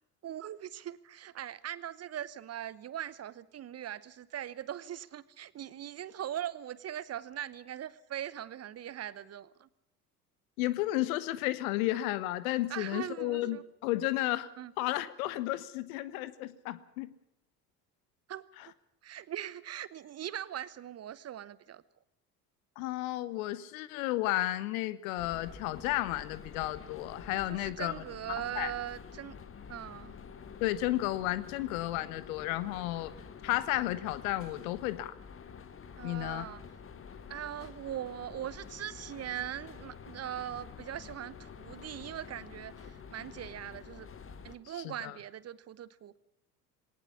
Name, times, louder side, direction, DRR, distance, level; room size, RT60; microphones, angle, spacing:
voice 1, 0.2-9.7 12.7-13.6 14.6-14.7 18.3-18.4 19.0-21.8 27.5-29.4 29.7-30.1 36.0-36.6 37.3-44.1 44.4-46.2, right 11 dB, 30° right, 18 dB, 0.9 m, -40 dB
voice 2, 10.6-14.5 14.8-17.1 22.8-27.9 28.6-28.7 30.6-33.1 33.4-35.1 36.0-36.5 44.8-45.1, left 16 dB, 60° left, 17 dB, 1.3 m, -32 dB
sound 1, 25.2-44.6, left 6 dB, 25° left, 1.8 m, -48 dB
20.5 x 18.5 x 7.1 m, 0.81 s
figure-of-eight pair, 60°, 47 cm